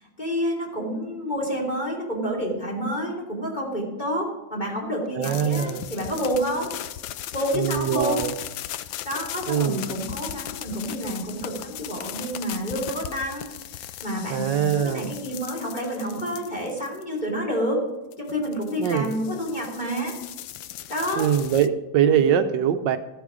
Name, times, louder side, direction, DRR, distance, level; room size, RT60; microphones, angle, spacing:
voice 1, 0.0-6.7 7.3-8.2 9.0-13.4 13.7-17.9 18.2-20.1 20.9-21.3, equal, 25° left, -2 dB, 3.1 m, -29 dB
voice 2, 5.1-5.9 7.5-8.3 9.5-9.9 14.3-15.1 18.8-19.1 21.2-23.0, right 8 dB, 75° right, 8 dB, 1.3 m, -23 dB
sound 1, 5.2-17.2 18.1-21.7, left 12 dB, 90° left, 1.3 m, -37 dB
14.5 x 8.4 x 5.0 m, 1.0 s
omnidirectional pair, 2.0 m